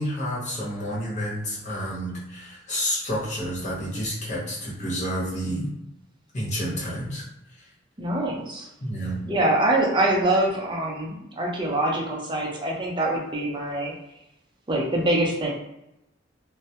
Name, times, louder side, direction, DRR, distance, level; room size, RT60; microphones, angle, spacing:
voice 1, 0.0-5.7 6.3-7.2 7.6-7.7 8.8-9.2, equal, 40° left, -6 dB, 0.9 m, -29 dB
voice 2, 8.0-8.7 9.2-13.9 14.7-15.5, right 1 dB, 25° right, -2 dB, 0.5 m, -24 dB
2.2 x 2.1 x 2.8 m, 0.87 s
head